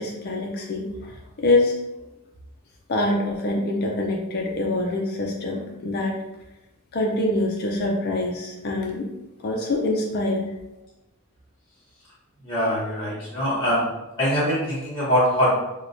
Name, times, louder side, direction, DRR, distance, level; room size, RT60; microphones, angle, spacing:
voice 1, 0.0-1.7 2.9-6.2 6.9-9.1 9.4-10.5, left 2 dB, 45° left, 0 dB, 0.4 m, -25 dB
voice 2, 12.4-13.9 14.2-15.6, equal, 20° left, -7 dB, 1.1 m, -22 dB
4.6 x 2.2 x 2.6 m, 0.96 s
head